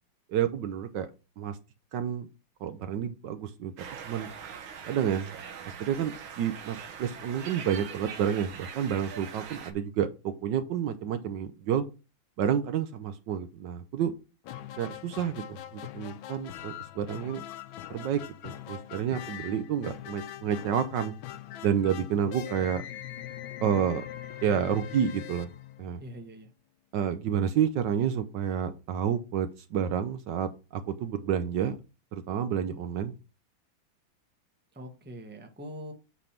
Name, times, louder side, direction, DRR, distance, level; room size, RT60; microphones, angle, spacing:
voice 1, 0.3-1.1 1.4-1.6 1.9-2.3 2.6-4.3 4.8-5.4 5.8-11.8 12.4-14.1 14.8-17.4 17.9-21.1 21.6-22.8 23.6-24.0 24.4-25.5 25.8-26.0 26.9-31.8 32.1-33.1, right 8 dB, 70° right, 10 dB, 1.2 m, -29 dB
sound 1, 3.8-9.7, right 7 dB, 85° right, 1.7 m, -42 dB
sound 2, 14.4-26.3, left 12 dB, 85° left, 1.5 m, -42 dB
voice 2, 26.0-26.5 34.7-35.9, equal, 5° right, 3 dB, 0.9 m, -43 dB
8.5 x 3.4 x 5.8 m, 0.30 s
omnidirectional pair, 2.1 m